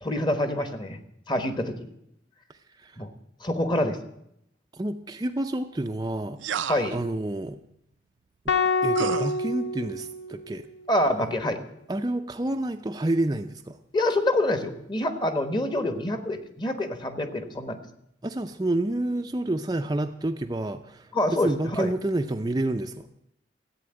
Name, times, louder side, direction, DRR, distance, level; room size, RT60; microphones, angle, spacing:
voice 1, 0.0-1.0 1.3-1.9 3.0-3.1 3.4-4.0 6.7-7.0 10.9-11.6 13.9-17.8 21.1-21.9, left 1 dB, 25° left, 8 dB, 1.2 m, -26 dB
voice 2, 2.5-3.0 4.7-7.6 8.5-8.6 8.8-10.7 11.9-13.8 18.2-23.1, right 1 dB, 20° right, 6 dB, 0.5 m, -29 dB
sound 1, 6.4-7.0 8.9-9.4, right 7 dB, 85° right, 0.5 m, -30 dB
sound 2, 8.5-10.8, left 3 dB, 85° left, 1.2 m, -27 dB
14.5 x 8.7 x 8.7 m, 0.77 s
head